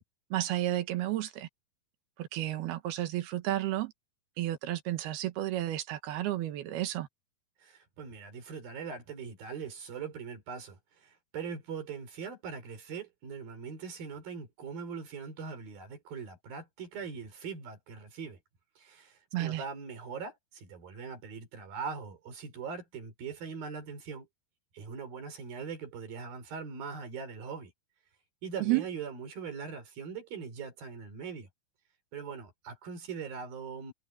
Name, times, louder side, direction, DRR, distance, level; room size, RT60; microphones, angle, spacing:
voice 1, 0.3-1.5 2.2-3.9 4.4-7.1 19.3-19.6 28.6-28.8, right 15 dB, 85° right, 3.4 m, -32 dB
voice 2, 7.6-18.4 18.8-24.3 24.7-27.7 28.4-31.5 32.1-33.9, right 6 dB, 70° right, 6.5 m, -41 dB
omnidirectional pair, 4.4 m